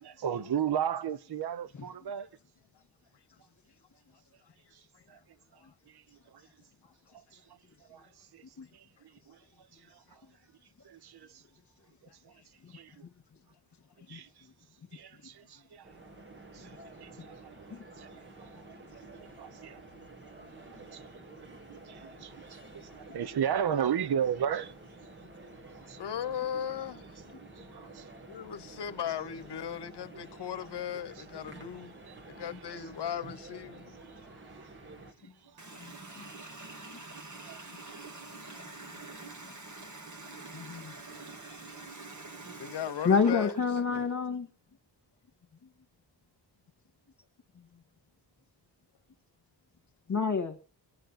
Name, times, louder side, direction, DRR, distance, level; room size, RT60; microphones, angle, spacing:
voice 1, 0.0-2.3 5.1-5.2 5.9-6.0 6.3-6.4 7.3-7.4 7.9-8.4 8.7-9.4 9.9-10.0 10.8-11.4 12.2-12.3 12.7-13.0 14.1-14.3 14.9-15.9 16.3-16.7 17.0-17.5 18.0-18.1 18.4-18.8 19.1-19.8 20.7-21.1 21.4-24.7 25.9-26.0 27.6-28.1 32.1-32.2 34.1-34.8 35.5-35.6 35.9-36.0 37.5-37.6 39.0-39.1 40.5-41.1, right 8 dB, 60° right, 0.9 m, -35 dB
sound 1, 15.8-35.1, right 2 dB, 25° right, 1.8 m, -50 dB
voice 2, 26.0-27.9 28.2-32.0 32.3-33.9 39.8-39.9 42.6-43.5 43.9-44.0, left 9 dB, 65° left, 1.0 m, -38 dB
Water tap faucet, 35.6-44.1, right 3 dB, 40° right, 2.2 m, -46 dB
voice 3, 40.5-40.9 43.1-44.5 50.1-50.6, left 5 dB, 40° left, 1.8 m, -28 dB
22.5 x 9.2 x 4.2 m
wide cardioid pair, 125°, 43 cm